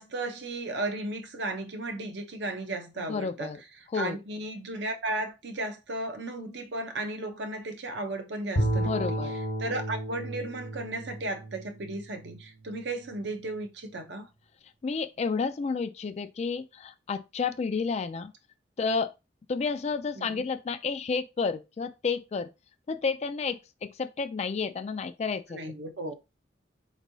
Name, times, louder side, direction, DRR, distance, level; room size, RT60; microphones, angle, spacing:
voice 1, 0.0-3.5 3.9-9.1 9.6-14.3 20.2-20.4 25.5-26.1, right 2 dB, 65° right, 0.7 m, -35 dB
voice 2, 3.0-3.6 3.9-4.2 8.7-9.3 14.8-18.3 18.8-19.1 19.5-22.5 22.9-25.6, left 5 dB, 35° left, 0.3 m, -31 dB
Bowed string instrument, 8.6-12.8, right 1 dB, 60° left, 0.8 m, -32 dB
4.4 x 3.0 x 2.7 m
head